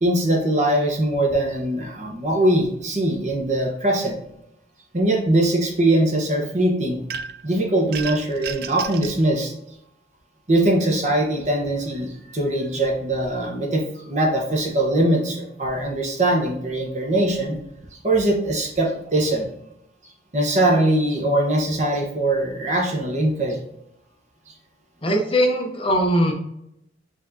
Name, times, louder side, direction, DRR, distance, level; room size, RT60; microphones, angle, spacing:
voice 1, 0.0-4.2 4.9-7.1 7.4-9.5 10.5-17.6 18.0-19.5 20.3-23.6 24.5-24.6, right 1 dB, 40° right, 0 dB, 1.0 m, -21 dB
sound 1, 7.1-7.5 7.9-9.2, right 6 dB, 55° right, 0.4 m, -32 dB
voice 2, 25.0-26.3, equal, 30° left, 2 dB, 0.7 m, -20 dB
5.2 x 3.7 x 2.7 m, 0.79 s
head